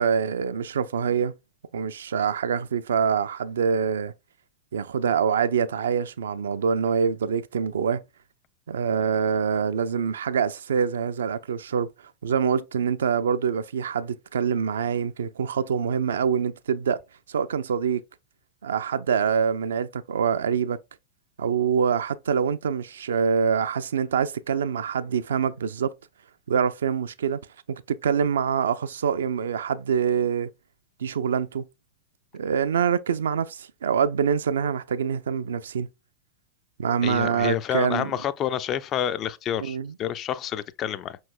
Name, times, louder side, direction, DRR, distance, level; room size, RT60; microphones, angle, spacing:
voice 1, 0.0-1.3 1.7-4.1 4.7-8.0 8.7-11.9 12.2-17.0 17.3-18.0 18.6-20.8 21.4-25.9 26.5-27.4 27.7-30.5 31.0-31.7 32.3-35.9 36.8-38.1 39.6-39.9, right 7 dB, 65° right, 0.3 m, -25 dB
voice 2, 37.0-41.2, left 10 dB, 30° left, 0.3 m, -29 dB
5.6 x 3.1 x 2.3 m
figure-of-eight pair, 90°, 0 cm